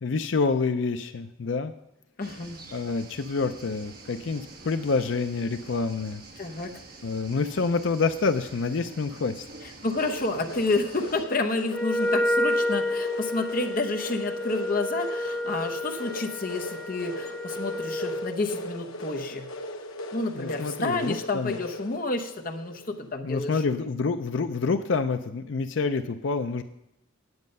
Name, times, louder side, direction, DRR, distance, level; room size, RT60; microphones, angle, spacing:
voice 1, 0.0-1.7 2.7-6.2 7.0-9.4 20.3-21.6 23.2-26.6, left 4 dB, 65° left, 9 dB, 0.5 m, -27 dB
voice 2, 2.2-2.6 6.4-6.7 9.6-19.5 20.1-23.7, left 3 dB, 40° left, 5 dB, 0.9 m, -30 dB
sound 1, 2.2-11.3, right 3 dB, 45° right, 1.2 m, -47 dB
sound 2, 9.9-23.1, left 1 dB, 90° left, 1.0 m, -39 dB
Wind instrument woodwind instrument, 11.7-18.4, left 1 dB, 10° left, 0.3 m, -30 dB
9.6 x 8.3 x 5.4 m, 0.81 s
head